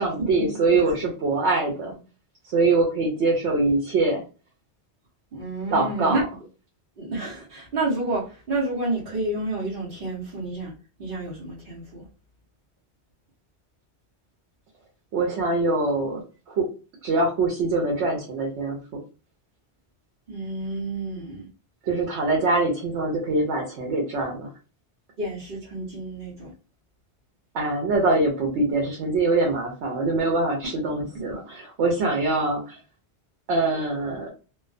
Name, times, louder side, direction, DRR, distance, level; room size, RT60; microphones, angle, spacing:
voice 1, 0.0-2.0 2.5-4.2 5.7-6.2 15.1-16.7 17.0-19.0 21.8-24.5 27.5-32.8 33.5-34.3, right 3 dB, 90° right, 0.9 m, -23 dB
voice 2, 5.3-6.2 7.0-10.7 11.0-12.1 20.3-21.5 25.2-26.5, right 2 dB, 60° right, 0.9 m, -30 dB
2.3 x 2.2 x 2.4 m
omnidirectional pair, 1.1 m